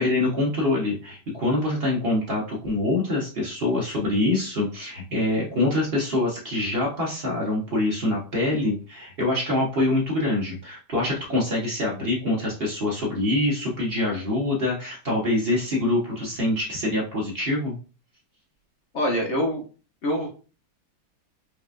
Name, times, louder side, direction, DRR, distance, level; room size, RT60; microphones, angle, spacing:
voice 1, 0.0-17.8, left 2 dB, 60° right, -3 dB, 0.6 m, -25 dB
voice 2, 18.9-19.6 20.0-20.3, equal, 60° left, -1 dB, 0.7 m, -24 dB
4.8 x 2.3 x 2.4 m, 0.36 s
omnidirectional pair, 2.2 m